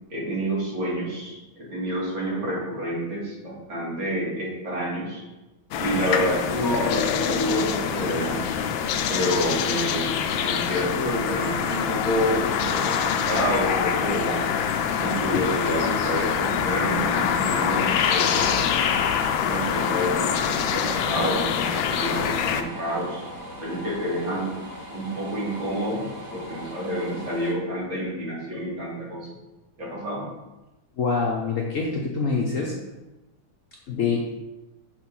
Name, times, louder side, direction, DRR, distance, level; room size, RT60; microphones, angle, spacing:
voice 1, 0.1-5.2 5.8-8.5 9.1-14.4 15.0-17.8 18.1-18.6 19.5-23.3 23.6-24.5 24.9-26.0 26.3-29.2 29.8-30.2, equal, 80° right, -6 dB, 2.9 m, -28 dB
sound 1, 5.7-22.6, left 7 dB, 80° left, 1.3 m, -25 dB
sound 2, 19.8-27.5, equal, 35° right, 1.1 m, -39 dB
voice 2, 31.0-32.8 33.9-34.3, left 4 dB, 60° left, -2 dB, 0.9 m, -25 dB
6.1 x 3.4 x 5.9 m, 1.1 s
omnidirectional pair, 2.1 m